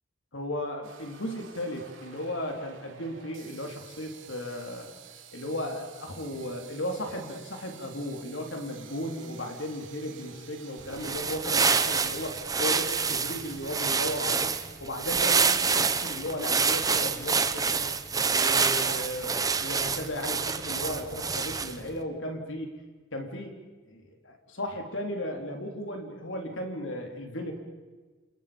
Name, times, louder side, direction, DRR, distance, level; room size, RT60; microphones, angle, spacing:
voice 1, 0.3-4.9 5.3-14.5 14.8-17.9 18.3-22.7 23.1-23.5 23.8-27.5, left 1 dB, 80° left, 3 dB, 4.0 m, -35 dB
sound 1, 0.8-14.2, right 7 dB, 85° right, 3.3 m, -51 dB
sound 2, 10.9-21.9, right 5 dB, 20° right, 0.9 m, -27 dB
29.0 x 29.0 x 5.4 m, 1.4 s
head